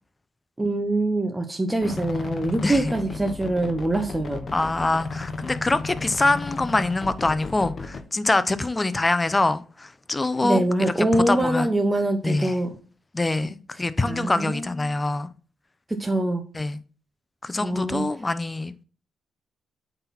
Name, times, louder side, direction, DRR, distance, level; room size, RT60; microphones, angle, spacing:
voice 1, 0.6-4.4 10.4-12.7 14.0-14.6 15.9-16.4 17.6-18.1, right 1 dB, 15° right, 1.0 m, -24 dB
sound 1, 1.8-8.0, left 3 dB, 50° left, 1.1 m, -34 dB
voice 2, 2.6-2.9 4.5-11.7 12.2-12.6 13.1-15.3 16.5-16.8 17.4-18.7, left 2 dB, 25° left, 0.7 m, -24 dB
8.7 x 4.1 x 4.2 m
cardioid pair, 65°, 0 cm